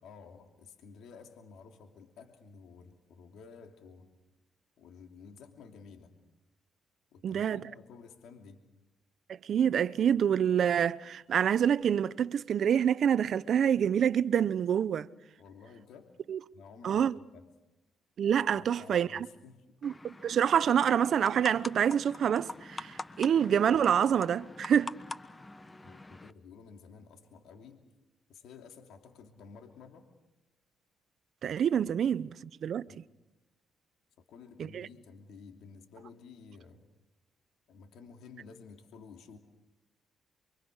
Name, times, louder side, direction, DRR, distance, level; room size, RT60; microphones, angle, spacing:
voice 1, 0.0-4.1 4.8-6.1 7.1-8.6 15.4-16.1 16.5-17.0 17.3-17.4 18.6-19.8 25.8-27.8 28.3-30.1 32.9-33.0 34.3-36.8 37.7-39.4, left 5 dB, 80° left, 2.9 m, -52 dB
voice 2, 7.2-7.6 9.3-15.1 16.3-16.4 16.8-17.2 18.2-19.3 19.8-24.9 31.4-32.3 32.6-33.0 34.6-34.9, right 8 dB, 60° right, 0.8 m, -27 dB
sound 1, 19.8-26.3, left 2 dB, 20° left, 1.3 m, -45 dB
28.5 x 24.5 x 6.6 m
cardioid pair, 90°, 0 cm